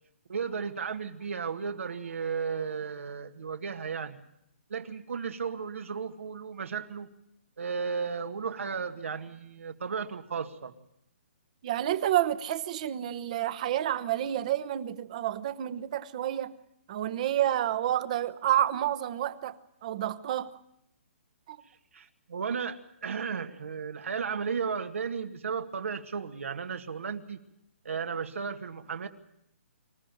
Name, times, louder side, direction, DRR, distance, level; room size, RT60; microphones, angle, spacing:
voice 1, 0.3-4.2 4.7-7.1 7.6-10.7 21.9-27.4 27.8-29.1, right 6 dB, 75° right, 2.0 m, -34 dB
voice 2, 11.6-16.5 16.9-19.6 19.8-20.5 21.5-21.6, right 12 dB, 30° right, 1.0 m, -29 dB
26.0 x 14.5 x 9.3 m
hypercardioid pair, 165°, 7 cm